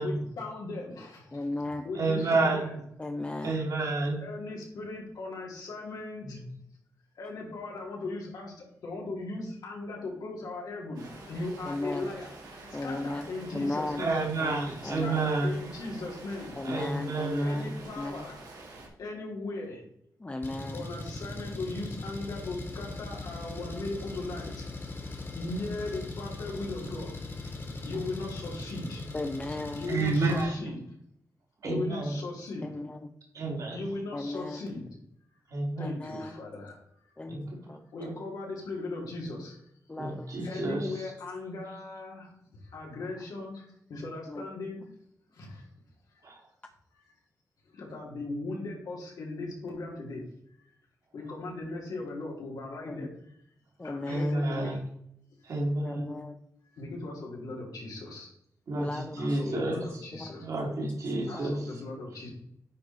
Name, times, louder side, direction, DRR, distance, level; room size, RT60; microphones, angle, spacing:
voice 1, 0.0-2.7 4.2-6.4 7.1-14.2 15.0-16.6 17.4-18.4 19.0-19.8 20.7-24.6 25.3-27.1 27.7-29.0 29.7-30.8 31.6-32.7 33.7-34.9 35.8-36.8 37.1-37.2 37.9-39.6 40.4-42.3 42.6-44.8 45.3-45.7 46.1-46.3 46.9-47.1 47.7-50.2 50.5-50.7 51.1-53.4 53.8-54.8 56.7-58.3 59.2-60.5 61.3-62.3, left 2 dB, 85° left, -1 dB, 2.9 m, -38 dB
voice 2, 1.3-1.9 3.0-3.6 11.7-12.1 12.7-14.0 14.4-15.2 16.6-18.3 20.2-20.8 29.1-29.9 32.6-33.0 34.1-34.6 35.8-36.3 37.2-37.4 37.7-37.8 39.9-40.7 44.3-44.4 52.9-53.1 53.8-54.4 55.8-56.4 58.8-59.7 60.2-60.3 61.3-61.7, left 2 dB, 20° left, 5 dB, 0.6 m, -36 dB
voice 3, 1.9-2.8 3.4-4.2 6.2-6.5 14.0-15.5 16.6-17.7 29.9-30.6 31.6-32.2 33.3-33.8 35.5-35.9 37.3-37.6 38.0-38.1 40.0-41.1 46.2-46.4 54.1-54.8 55.4-56.1 58.7-60.0 60.4-61.7, right 2 dB, 65° right, -1 dB, 2.5 m, -30 dB
Rain, 10.9-18.9, right 2 dB, 90° right, 2.3 m, -47 dB
Engine, 20.4-30.4, left 2 dB, 40° left, 1.9 m, -40 dB
9.3 x 4.6 x 4.1 m, 0.72 s
cardioid pair, 100°, 6 cm